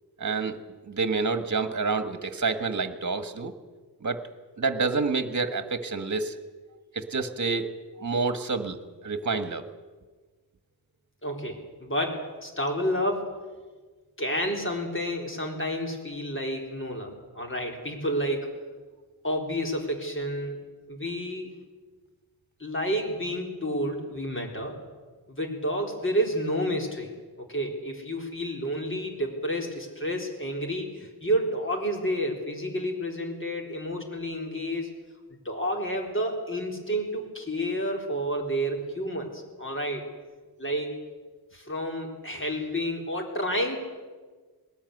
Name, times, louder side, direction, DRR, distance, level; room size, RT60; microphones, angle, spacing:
voice 1, 0.2-0.6 0.9-3.5 4.0-4.2 4.6-6.3 6.9-7.7 8.0-8.8 9.0-9.6, right 4 dB, 45° right, 9 dB, 1.6 m, -28 dB
voice 2, 11.2-13.4 14.2-18.5 19.2-20.6 20.9-21.5 22.6-24.8 25.3-27.1 27.4-34.9 35.4-40.0 40.6-41.0 41.5-43.8, equal, 30° left, 1 dB, 4.0 m, -30 dB
20.5 x 13.5 x 9.7 m, 1.4 s
wide cardioid pair, 90°, 40 cm